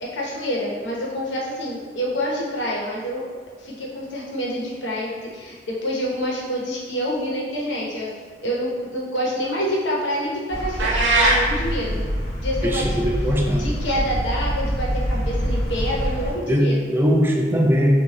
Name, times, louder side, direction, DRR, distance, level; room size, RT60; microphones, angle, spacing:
voice 1, 0.0-3.2 3.6-8.1 8.4-12.0 12.4-13.0 13.6-16.8, equal, 70° left, -3 dB, 1.0 m, -27 dB
sound 1, 10.5-16.3, equal, 30° left, 1.2 m, -26 dB
sound 2, 10.8-11.4, right 2 dB, 80° right, 0.8 m, -18 dB
voice 2, 12.6-13.7 16.5-16.6 16.9-17.9, equal, 10° right, -1 dB, 0.5 m, -20 dB
5.6 x 2.5 x 2.9 m, 1.5 s
head